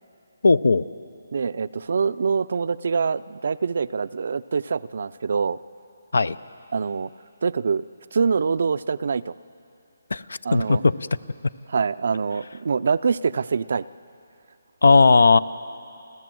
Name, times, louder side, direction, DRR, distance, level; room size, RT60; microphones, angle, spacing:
voice 1, 0.4-0.8 6.1-6.4 10.1-10.2 10.5-10.9 14.8-15.4, left 3 dB, 80° left, 18 dB, 0.6 m, -16 dB
voice 2, 1.3-5.6 6.7-7.1 7.4-7.9 8.1-9.3 10.4-10.8 11.7-13.9, right 5 dB, 60° right, 16 dB, 0.5 m, -24 dB
28.5 x 14.0 x 7.7 m, 2.7 s
hypercardioid pair, 155°, 0 cm